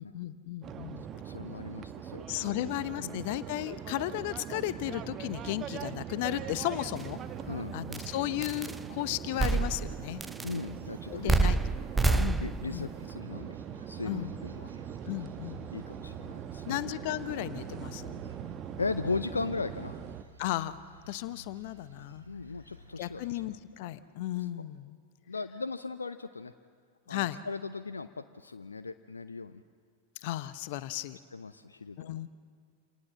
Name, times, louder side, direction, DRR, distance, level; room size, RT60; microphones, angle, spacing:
voice 1, 0.0-1.1 2.3-7.2 7.7-10.2 11.1-11.6 12.2-12.4 12.7-12.9 14.0-14.3 15.1-15.7 16.7-18.1 20.4-20.8 21.1-22.2 23.0-25.0 27.1-27.4 30.2-31.2 32.0-32.3, left 15 dB, 50° left, 14 dB, 1.0 m, -35 dB
sound 1, 0.6-20.2, right 9 dB, 30° right, 1.2 m, -41 dB
voice 2, 1.2-3.2 7.5-7.8 10.4-11.5 11.9-13.6 13.9-14.7 15.7-16.8 18.8-20.0 22.3-23.6 25.3-26.5 27.1-29.6 31.3-32.3, left 4 dB, 75° left, 10 dB, 0.7 m, -38 dB
sound 2, 7.0-7.1 7.9-8.1 8.4-8.8 9.4-10.0 10.2-10.6 11.3-12.7, right 3 dB, 10° right, 0.8 m, -27 dB
sound 3, 9.8-23.5, right 3 dB, 80° right, 2.9 m, -53 dB
28.0 x 27.5 x 7.5 m, 2.1 s
figure-of-eight pair, 90°, 0 cm